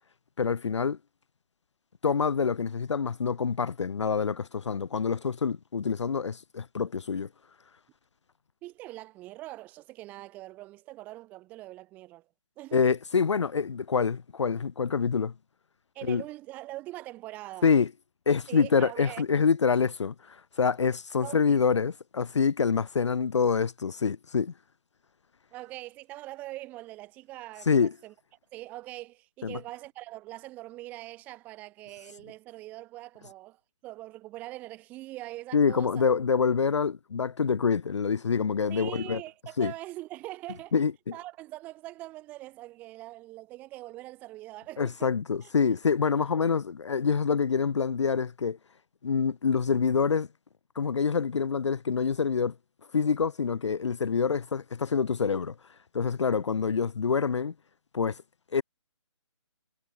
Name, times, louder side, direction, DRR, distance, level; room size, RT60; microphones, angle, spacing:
voice 1, 0.4-1.0 2.0-7.3 12.7-15.3 16.1-16.2 17.6-17.9 18.3-24.5 27.7-27.9 29.4-29.6 35.5-39.2 39.6-39.7 40.7-41.2 44.8-48.6 49.0-50.3 50.8-52.6 52.9-55.5 55.9-57.5 57.9-58.2 58.5-58.6, left 5 dB, 65° left, 0.7 m, -26 dB
voice 2, 8.6-12.2 12.6-12.8 15.9-17.7 18.5-19.2 21.2-21.6 25.5-28.1 28.5-36.0 38.7-40.7 41.1-45.1 45.4-45.8, right 17 dB, 10° right, 2.9 m, -43 dB
hypercardioid pair, 175°, 16 cm